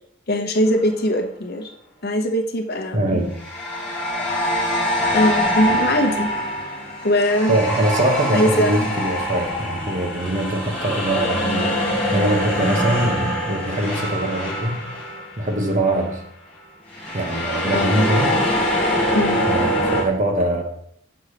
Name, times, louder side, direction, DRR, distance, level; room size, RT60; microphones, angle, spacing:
voice 1, 0.3-1.7 2.0-3.2 5.1-6.3 7.0-7.6 8.3-8.9 17.7-18.0 19.1-19.4, left 1 dB, 50° left, 5 dB, 0.8 m, -21 dB
sound 1, 0.7-0.9 3.3-15.7 16.0-16.2 16.9-20.0, equal, 5° left, 2.4 m, -24 dB
voice 2, 2.9-3.4 7.5-11.7 12.1-15.1 15.4-16.2 17.1-18.4 19.5-20.6, right 1 dB, 35° right, 2 dB, 1.2 m, -22 dB
6.2 x 5.5 x 4.9 m, 0.69 s
head